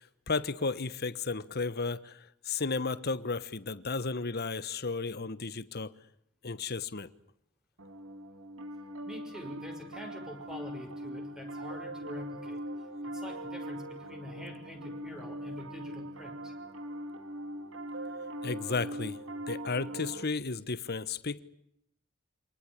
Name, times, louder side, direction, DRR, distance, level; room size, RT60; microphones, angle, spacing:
voice 1, 0.0-5.9 6.4-7.1 18.4-19.2 19.5-21.4, left 4 dB, 50° left, 1.2 m, -33 dB
Piano, 7.8-20.2, right 1 dB, 70° right, 2.2 m, -41 dB
voice 2, 9.1-16.5, left 1 dB, 5° right, 6.1 m, -46 dB
27.0 x 19.5 x 9.9 m
head